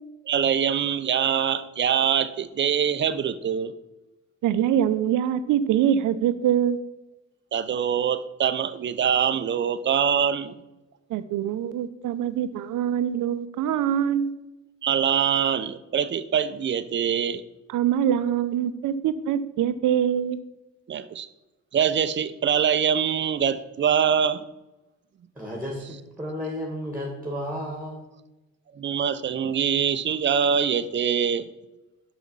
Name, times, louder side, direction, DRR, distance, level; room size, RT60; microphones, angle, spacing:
voice 1, 0.3-3.7 7.5-10.5 14.8-17.4 20.9-21.3 21.7-24.4 25.8-26.0 28.8-31.5, right 8 dB, 40° right, 0.6 m, -24 dB
voice 2, 4.4-6.8 11.1-14.3 17.7-20.4, right 9 dB, 80° right, 0.6 m, -24 dB
voice 3, 25.4-28.1, equal, 5° right, 1.8 m, -33 dB
6.1 x 5.9 x 5.4 m
cardioid pair, 90°, 30 cm